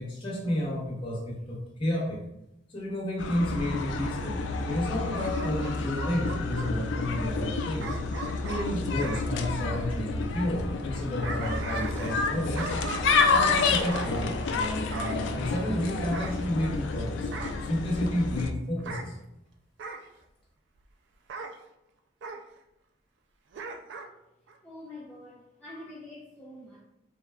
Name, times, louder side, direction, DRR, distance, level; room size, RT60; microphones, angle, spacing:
voice 1, 0.0-2.2 2.7-4.4 4.7-8.0 8.4-12.7 13.3-17.3 17.6-19.1, left 1 dB, 30° left, -6 dB, 1.1 m, -31 dB
sound 1, 3.2-18.5, left 4 dB, 80° left, 0.3 m, -29 dB
Bark / Growling, 5.1-6.7 7.8-9.3 10.9-12.3 12.5-14.1 14.9-15.2 16.1-16.9 17.3-17.7 18.8-19.1 19.8-20.1 21.3-21.6 22.2-22.4 23.5-24.1 24.5-24.6, right 4 dB, 80° right, 0.3 m, -38 dB
voice 2, 24.6-26.8, left 1 dB, 10° left, -7 dB, 0.4 m, -45 dB
3.7 x 2.2 x 2.3 m, 0.87 s
head